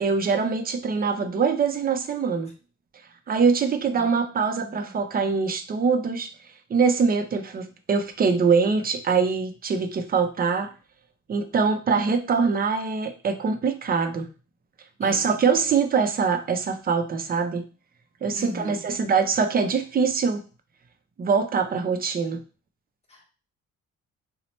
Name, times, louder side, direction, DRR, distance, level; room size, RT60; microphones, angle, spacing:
voice 1, 0.0-2.5 3.3-6.3 6.7-10.7 11.3-14.3 15.0-17.7 18.2-20.4 21.2-22.4, right 5 dB, 30° right, 7 dB, 0.4 m, -23 dB
voice 2, 4.5-5.0 15.0-15.3 18.3-18.9 23.1-23.2, left 1 dB, 20° left, -1 dB, 1.0 m, -40 dB
2.8 x 2.0 x 3.0 m, 0.35 s
cardioid pair, 90°, 30 cm